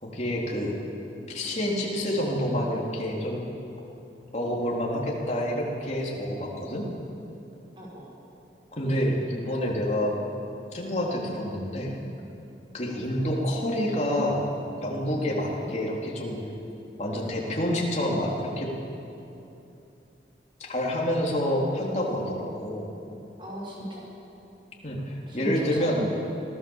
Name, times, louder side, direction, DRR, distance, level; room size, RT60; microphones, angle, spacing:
voice 1, 0.0-0.8 1.3-3.4 4.3-6.8 8.8-10.2 10.7-11.9 12.7-14.4 14.8-16.4 17.0-18.8 20.6-22.9 24.8-26.0, equal, 40° left, -2 dB, 3.5 m, -28 dB
voice 2, 7.8-8.1 12.9-13.0 15.5-15.7 23.4-24.0 25.3-26.1, right 1 dB, 30° right, -5 dB, 6.2 m, -37 dB
25.0 x 16.5 x 7.3 m, 2.8 s
head